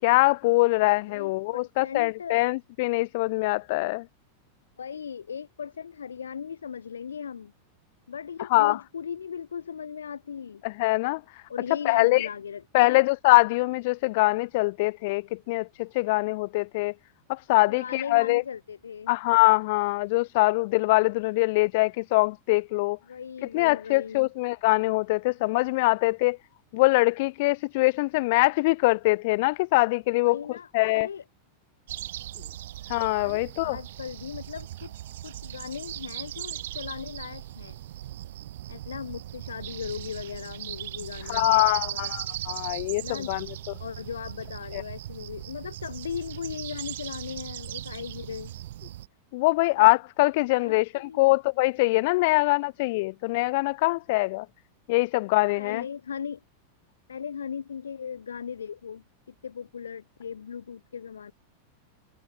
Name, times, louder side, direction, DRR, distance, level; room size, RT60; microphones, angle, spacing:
voice 1, 0.0-4.0 8.5-8.8 10.6-11.4 11.8-12.3 12.7-16.9 17.3-18.4 19.1-23.0 23.5-26.4 26.7-30.4 30.7-31.1 32.9-33.8 41.3-43.5 44.7-44.8 49.3-54.5 54.9-55.8, left 23 dB, 50° left, 4.1 m, -23 dB
voice 2, 1.1-2.4 4.8-7.5 8.1-10.6 11.5-13.0 17.7-19.1 23.1-24.3 30.2-31.2 33.2-37.8 38.7-42.1 43.0-43.4 43.8-48.5 49.8-49.9 50.5-51.3 55.6-56.4 57.1-61.3, left 7 dB, 70° left, 5.5 m, -38 dB
sound 1, 31.9-49.1, right 13 dB, 55° right, 5.7 m, -38 dB
figure-of-eight pair, 90°, 0 cm